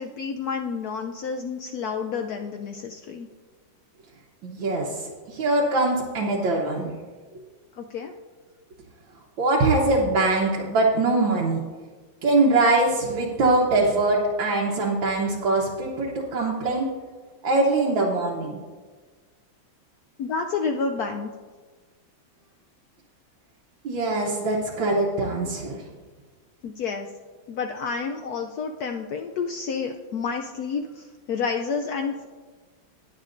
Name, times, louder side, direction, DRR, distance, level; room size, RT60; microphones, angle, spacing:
voice 1, 0.0-3.3 7.8-8.1 20.2-21.3 26.6-27.1 27.5-32.3, left 5 dB, 75° left, 4 dB, 0.9 m, -30 dB
voice 2, 4.4-4.9 5.3-6.9 9.4-11.6 12.2-16.9 17.4-18.6 23.8-25.8, right 2 dB, 75° right, -3 dB, 1.8 m, -22 dB
19.5 x 7.4 x 2.6 m, 1.4 s
omnidirectional pair, 2.2 m